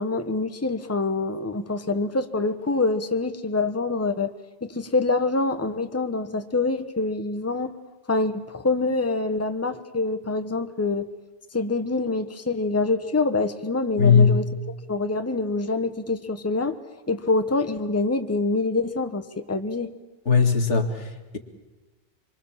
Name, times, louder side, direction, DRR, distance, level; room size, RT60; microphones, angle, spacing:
voice 1, 0.0-4.3 4.6-7.7 8.1-11.1 11.5-14.4 14.9-16.8 17.1-19.9, left 3 dB, 15° left, 8 dB, 1.1 m, -25 dB
voice 2, 14.0-14.4 20.3-21.4, left 6 dB, 80° left, 5 dB, 2.5 m, -19 dB
26.5 x 24.0 x 7.4 m, 1.1 s
omnidirectional pair, 1.2 m